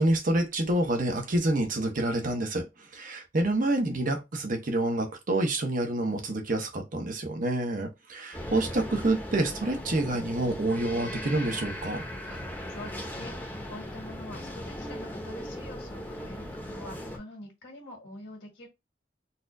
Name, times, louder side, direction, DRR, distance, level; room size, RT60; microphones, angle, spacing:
voice 1, 0.0-12.0, right 1 dB, 45° right, 0.9 m, -28 dB
sound 1, 8.3-17.2, equal, 10° left, 0.9 m, -38 dB
voice 2, 12.7-18.7, left 1 dB, 70° left, 1.6 m, -45 dB
4.1 x 2.5 x 2.6 m
head